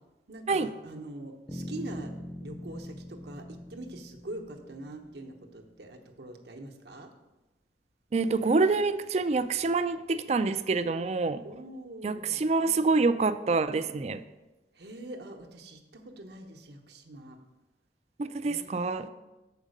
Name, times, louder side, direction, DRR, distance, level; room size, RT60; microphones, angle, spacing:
voice 1, 0.3-2.1 2.4-7.1 11.4-12.4 14.7-17.4 18.4-19.1, right 1 dB, 65° right, 2 dB, 0.9 m, -44 dB
sound 1, 1.5-5.4, equal, 20° left, 0.6 m, -43 dB
voice 2, 8.1-11.4 12.0-14.2 18.2-19.1, right 3 dB, 35° right, 12 dB, 0.3 m, -26 dB
7.2 x 5.1 x 6.5 m, 1.1 s
head